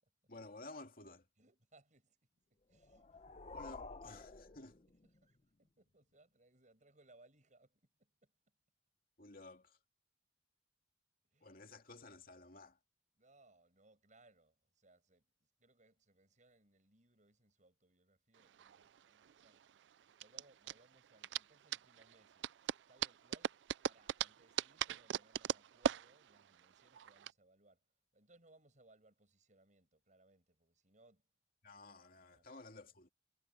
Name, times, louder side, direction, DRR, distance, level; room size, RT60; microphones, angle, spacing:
voice 1, 0.3-1.3 3.5-4.8 9.2-9.8 11.4-12.8 31.6-33.1, left 2 dB, 55° left, 2.5 m, -54 dB
voice 2, 1.4-2.3 2.7-4.7 5.0-8.3 11.3-11.7 13.2-27.8 28.1-31.3 32.3-32.5, right 2 dB, 45° right, 7.4 m, -69 dB
sound 1, 2.7-5.4, left 3 dB, 40° left, 0.8 m, -52 dB
sound 2, 18.4-27.3, right 9 dB, 80° right, 0.4 m, -40 dB
head